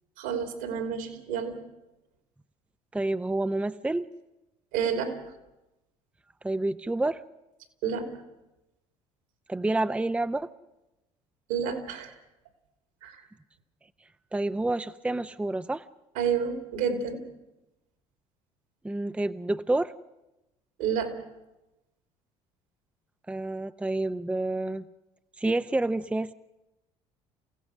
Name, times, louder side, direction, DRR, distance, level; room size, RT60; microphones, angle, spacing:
voice 1, 0.2-1.6 4.7-5.1 7.8-8.1 11.5-12.1 13.0-13.2 16.1-17.2 20.8-21.1, right 7 dB, 75° right, 6 dB, 3.1 m, -29 dB
voice 2, 2.9-4.0 6.4-7.2 9.5-10.5 14.3-15.8 18.8-19.9 23.3-24.8 25.4-26.3, right 2 dB, 5° right, 11 dB, 0.6 m, -28 dB
28.5 x 16.0 x 6.2 m, 0.96 s
hypercardioid pair, 65°, 17 cm